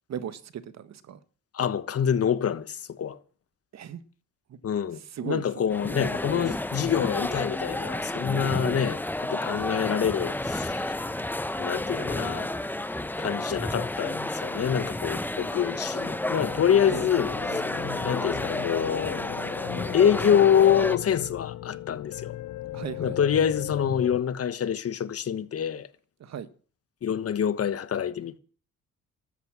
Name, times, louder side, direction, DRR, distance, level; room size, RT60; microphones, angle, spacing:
voice 1, 0.1-1.2 3.7-4.0 4.5-4.6 5.0-6.2 9.4-9.7 16.9-17.1 22.7-23.2 26.2-26.5, right 8 dB, 60° right, 1.5 m, -38 dB
voice 2, 1.5-3.2 4.6-11.1 11.6-12.5 13.2-17.6 18.0-19.2 19.9-22.4 23.0-25.9 27.0-28.4, left 8 dB, 50° left, 1.3 m, -26 dB
sound 1, 5.7-21.0, left 1 dB, 5° left, 0.9 m, -31 dB
sound 2, 16.3-24.2, left 15 dB, 80° left, 0.7 m, -37 dB
14.0 x 13.0 x 6.1 m
cardioid pair, 90°, 30 cm